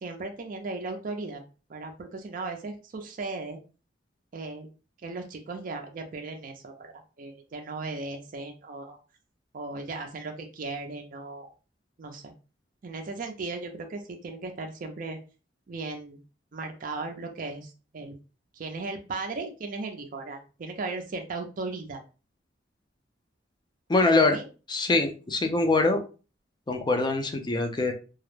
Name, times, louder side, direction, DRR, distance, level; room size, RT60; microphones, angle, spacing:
voice 1, 0.0-1.4 1.7-3.6 4.3-4.7 5.0-9.0 9.5-11.5 12.0-12.3 12.8-15.2 15.7-16.2 16.5-18.1 18.5-22.0 24.0-24.4, right 3 dB, 45° right, 4 dB, 0.4 m, -36 dB
voice 2, 23.9-24.4 24.7-26.0 26.7-27.9, left 3 dB, 25° left, 5 dB, 0.4 m, -23 dB
2.3 x 2.0 x 3.1 m, 0.34 s
head